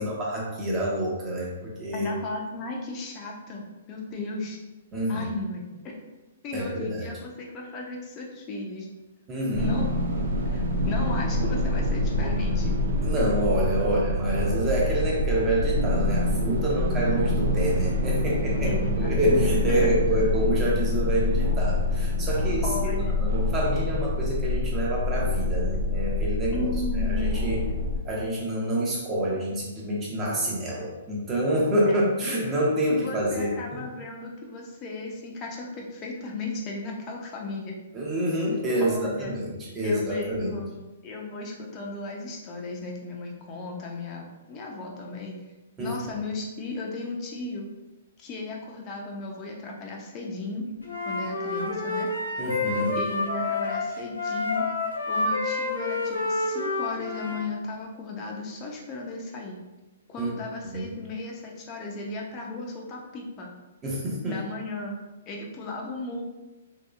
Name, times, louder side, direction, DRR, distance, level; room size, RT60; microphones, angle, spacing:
voice 1, 0.0-2.1 4.9-5.3 6.5-7.1 9.3-9.7 13.0-26.7 26.9-27.7 28.0-33.8 37.9-40.6 45.8-46.0 52.4-53.0 60.2-60.3 60.7-60.9 63.8-64.4, right 1 dB, 25° right, -4 dB, 0.8 m, -27 dB
voice 2, 1.9-4.6 5.1-5.9 6.4-8.9 9.5-9.9 10.4-12.8 13.8-13.9 18.6-19.4 19.7-19.9 22.6-23.2 26.5-27.3 31.9-32.0 32.9-37.8 38.8-39.3 39.8-40.7 41.0-45.4 45.8-47.7 48.2-50.7 51.0-52.1 52.9-54.7 55.1-59.6 60.1-63.5 64.3-64.9 65.3-66.2, left 3 dB, 30° left, -1 dB, 0.5 m, -35 dB
sound 1, 9.5-28.0, left 2 dB, 65° right, 0.4 m, -26 dB
Wind instrument woodwind instrument, 50.8-57.5, left 3 dB, 85° left, 0.7 m, -28 dB
2.8 x 2.3 x 2.3 m, 1.1 s
hypercardioid pair, 125°, 0 cm